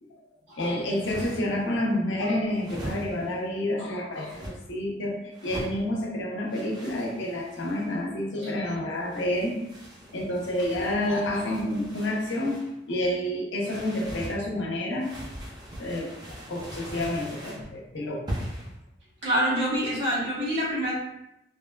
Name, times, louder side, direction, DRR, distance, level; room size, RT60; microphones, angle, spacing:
voice 1, 0.6-9.6 10.1-12.6 12.9-15.1 15.8-18.2, left 1 dB, 85° left, -2 dB, 0.7 m, -29 dB
sound 1, 0.8-1.6 2.5-3.4 4.1-4.5 5.3-5.8 6.5-7.9 8.9-12.7 13.6-14.4 15.0-17.7 18.3-18.7, equal, 25° right, 0.5 m, -40 dB
voice 2, 19.2-20.9, equal, 70° right, -9 dB, 1.4 m, -26 dB
3.4 x 2.1 x 2.2 m, 0.87 s
head